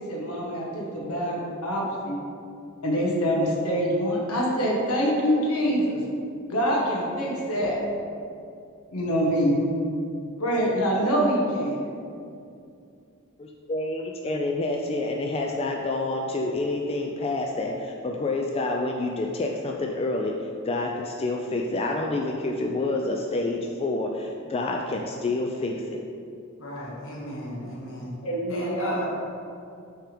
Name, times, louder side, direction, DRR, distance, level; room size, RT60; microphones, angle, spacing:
voice 1, 0.0-2.2 2.8-6.0 6.5-7.8 8.9-9.6 10.4-11.8 28.2-28.9, equal, 85° left, -2 dB, 1.2 m, -25 dB
voice 2, 13.4-26.0, left 2 dB, 25° left, 1 dB, 0.3 m, -28 dB
voice 3, 26.6-28.1 28.5-29.1, left 1 dB, 65° left, -4 dB, 1.4 m, -34 dB
5.7 x 3.6 x 5.0 m, 2.5 s
head